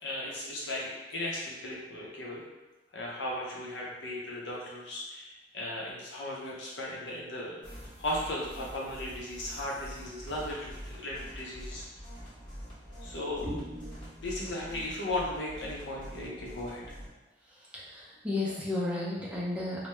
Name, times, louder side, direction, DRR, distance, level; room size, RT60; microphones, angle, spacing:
voice 1, 0.0-2.4 2.9-7.6 8.0-11.8 13.0-13.5 14.2-16.8, left 1 dB, 80° left, -4 dB, 0.7 m, -36 dB
sound 1, 7.6-17.1, equal, 30° left, 0.9 m, -45 dB
voice 2, 13.4-14.1 17.7-19.9, left 2 dB, 5° right, -6 dB, 0.5 m, -34 dB
2.2 x 2.1 x 2.9 m, 1.1 s
head